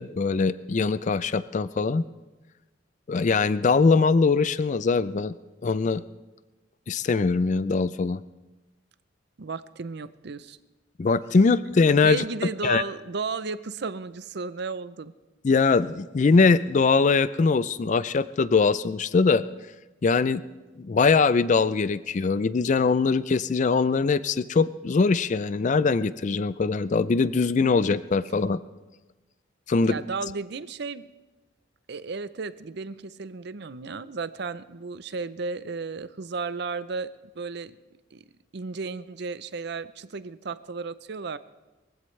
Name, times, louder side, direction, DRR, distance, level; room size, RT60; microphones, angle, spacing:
voice 1, 0.0-2.0 3.1-5.3 5.6-6.0 6.9-8.2 11.0-12.2 12.6-12.8 15.4-19.4 20.0-20.4 20.8-28.6 29.7-29.9, left 4 dB, 40° left, 15 dB, 0.4 m, -22 dB
voice 2, 9.4-10.6 12.0-15.1 29.8-31.1 31.9-37.1 37.3-37.8 38.1-38.2 38.5-41.4, right 4 dB, 60° right, 14 dB, 0.6 m, -34 dB
22.5 x 15.5 x 3.2 m, 1.1 s
head